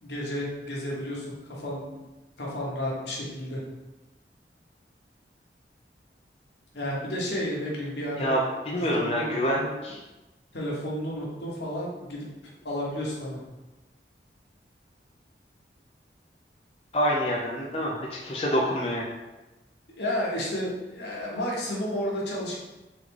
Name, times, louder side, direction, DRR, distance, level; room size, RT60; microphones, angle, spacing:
voice 1, 0.0-2.0 2.4-3.6 6.7-8.3 8.8-9.7 10.5-12.3 12.6-13.4 19.9-22.6, equal, 80° left, -4 dB, 1.1 m, -32 dB
voice 2, 8.7-10.0 16.9-19.1, equal, 35° left, -3 dB, 0.4 m, -26 dB
3.6 x 3.2 x 3.5 m, 1.1 s
head